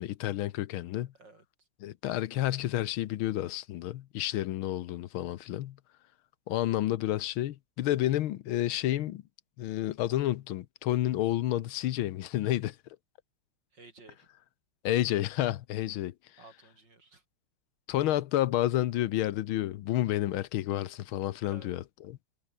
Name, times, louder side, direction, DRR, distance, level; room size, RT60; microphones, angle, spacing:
voice 1, 0.0-1.1 1.8-5.8 6.5-9.2 9.6-12.8 14.8-16.1 17.9-22.2, left 13 dB, 80° left, 1.6 m, -30 dB
voice 2, 1.2-1.7 13.7-14.3 16.4-17.2 21.4-21.7, right 3 dB, 55° right, 5.7 m, -54 dB
omnidirectional pair, 2.3 m